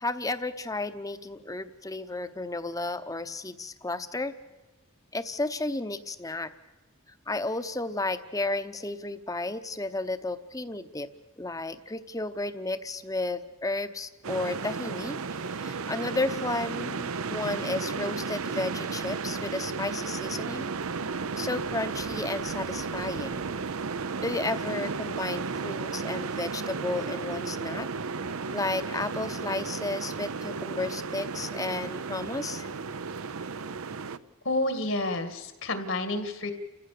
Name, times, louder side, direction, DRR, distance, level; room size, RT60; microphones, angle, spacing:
voice 1, 0.0-4.3 5.1-6.5 7.3-11.1 11.4-15.2 15.6-20.7 21.4-23.5 24.2-27.9 28.5-32.7, left 2 dB, 15° left, 11 dB, 0.8 m, -33 dB
sound 1, 14.2-34.2, right 4 dB, 85° right, 0.7 m, -34 dB
voice 2, 34.4-36.5, left 2 dB, 65° left, 8 dB, 2.1 m, -29 dB
30.0 x 15.5 x 6.8 m, 1.2 s
head